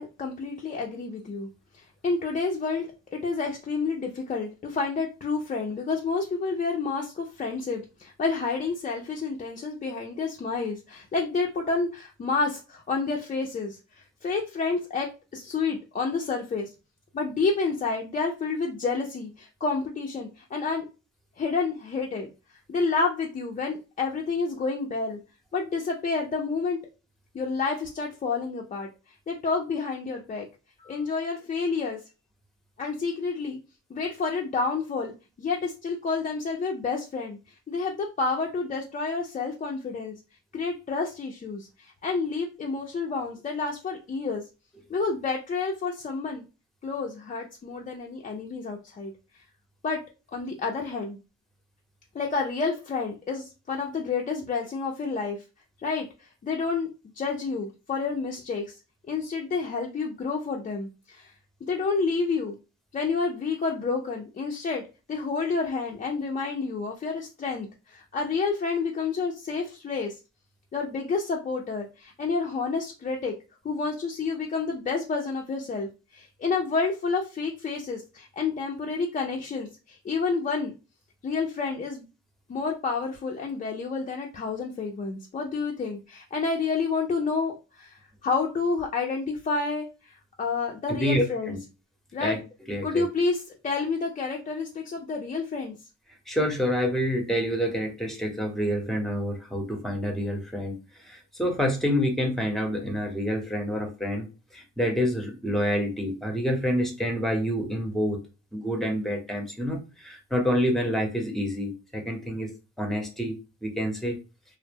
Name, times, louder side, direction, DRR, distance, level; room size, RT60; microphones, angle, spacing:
voice 1, 0.0-16.7 17.1-20.9 21.4-22.3 22.7-25.2 25.5-26.8 27.3-28.9 29.3-30.5 30.8-32.0 32.8-33.6 33.9-35.1 35.4-37.4 37.7-40.1 40.5-44.4 44.9-46.4 46.8-49.1 49.8-50.0 50.3-51.2 52.1-55.4 55.8-56.9 57.2-58.7 59.1-61.3 61.6-62.6 62.9-64.8 65.1-70.1 70.7-73.3 73.6-80.7 81.2-82.1 82.5-91.5 92.1-92.4 92.8-95.7, left 4 dB, 25° left, 0 dB, 0.4 m, -29 dB
voice 2, 90.9-91.6 92.2-92.4 92.7-93.1 96.3-100.8 101.0-104.3 104.5-108.2 108.5-112.5 112.8-113.4 113.6-114.2, equal, ahead, 3 dB, 0.8 m, -27 dB
2.1 x 2.0 x 3.3 m, 0.31 s
cardioid pair, 90°, 30 cm